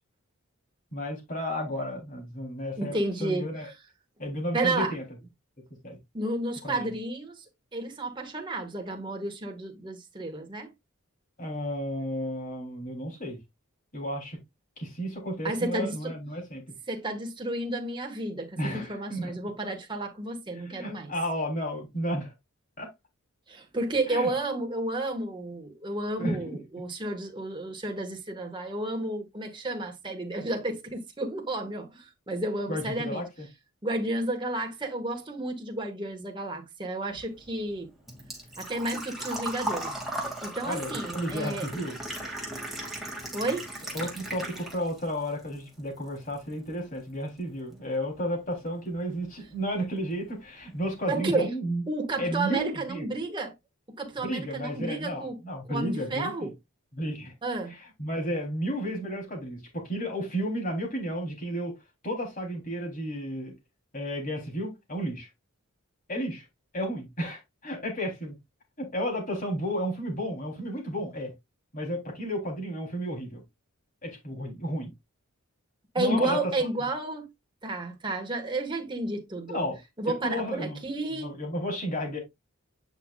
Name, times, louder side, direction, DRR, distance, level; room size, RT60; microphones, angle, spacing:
voice 1, 0.9-2.9 3.2-3.7 4.2-5.0 5.8-6.0 6.6-6.9 11.4-13.4 13.9-14.4 14.8-16.6 18.6-19.3 20.6-22.3 22.8-22.9 24.1-24.3 26.2-26.6 32.7-33.5 40.6-42.0 43.9-51.8 52.2-53.1 54.2-56.5 56.9-57.3 57.7-61.8 62.0-63.6 63.9-65.3 66.1-66.5 66.7-68.3 68.8-71.3 71.7-73.4 74.0-74.9 76.0-76.5 79.5-79.8 80.2-80.8 81.1-82.2, equal, 40° left, 3.5 m, -32 dB
voice 2, 2.8-3.4 4.5-4.9 6.1-7.4 7.7-10.7 15.4-16.1 16.9-21.1 23.5-33.2 33.8-37.9 38.6-41.7 43.3-43.7 51.1-51.5 51.9-53.5 54.0-55.4 55.7-56.5 57.4-57.8 75.9-77.3 77.6-79.6 80.0-81.3, right 2 dB, 20° right, 1.7 m, -31 dB
Engine / Trickle dribble / Fill (with liquid), 37.1-45.1 45.4-46.4 46.7-46.8 48.7-48.8 49.0-49.3 49.7-49.8 50.0-50.1, right 1 dB, ahead, 2.4 m, -37 dB
9.0 x 5.8 x 2.4 m
head